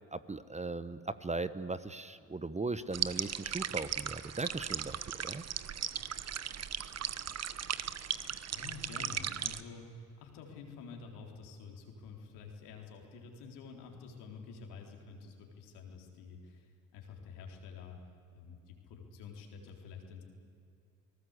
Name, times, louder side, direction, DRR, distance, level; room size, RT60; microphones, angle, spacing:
voice 1, 0.1-5.4, right 3 dB, 15° right, 13 dB, 1.0 m, -38 dB
sound 1, 2.9-9.6, right 9 dB, 40° right, 1.1 m, -37 dB
voice 2, 8.5-18.0 18.3-20.2, left 5 dB, 75° left, 1 dB, 4.0 m, -49 dB
29.5 x 19.0 x 8.2 m, 2.6 s
hypercardioid pair, 60°, 40 cm